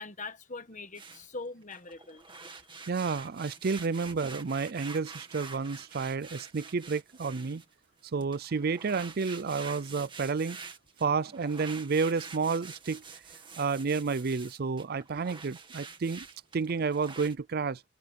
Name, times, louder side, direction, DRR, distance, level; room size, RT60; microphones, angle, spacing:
voice 1, 0.0-2.8, left 3 dB, 35° left, 1.4 m, -43 dB
sound 1, 0.9-1.3 1.6-7.7 8.2-17.3, right 5 dB, 25° right, 2.1 m, -47 dB
voice 2, 2.9-7.6 8.1-10.6 11.0-13.0 13.6-16.3 16.5-17.8, right 5 dB, 45° right, 0.5 m, -30 dB
head